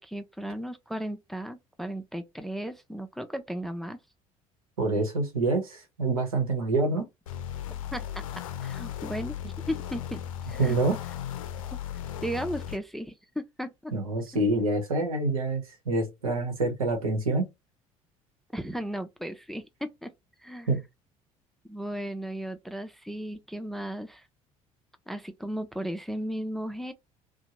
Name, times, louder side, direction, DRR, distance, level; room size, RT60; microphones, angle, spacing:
voice 1, 0.0-4.0 7.9-8.2 8.6-9.4 9.7-10.2 10.5-10.8 12.2-13.9 14.3-14.4 18.5-20.1 20.4-20.7 21.6-24.3 25.1-26.9, equal, ahead, 0.5 m, -35 dB
voice 2, 4.8-7.1 10.6-11.0 13.9-17.5 20.7-20.8, right 2 dB, 80° right, 1.0 m, -26 dB
sound 1, 7.3-12.8, left 10 dB, 70° left, 0.5 m, -36 dB
2.7 x 2.2 x 2.8 m
figure-of-eight pair, 60°, 18 cm